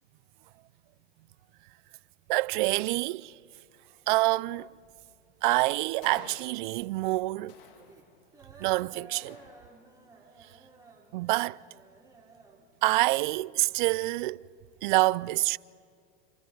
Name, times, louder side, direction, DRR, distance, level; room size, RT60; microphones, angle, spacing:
voice 1, 2.3-3.3 4.1-4.7 5.4-7.5 8.6-9.4 11.1-11.6 12.8-14.4 14.8-15.6, right 20 dB, 60° right, 0.5 m, -26 dB
sound 1, 4.5-14.6, right 3 dB, 10° right, 4.3 m, -56 dB
sound 2, 6.0-7.0 7.5-8.5 9.1-10.1, left 8 dB, 65° left, 2.4 m, -52 dB
28.0 x 28.0 x 4.7 m
hypercardioid pair, 105°, 29 cm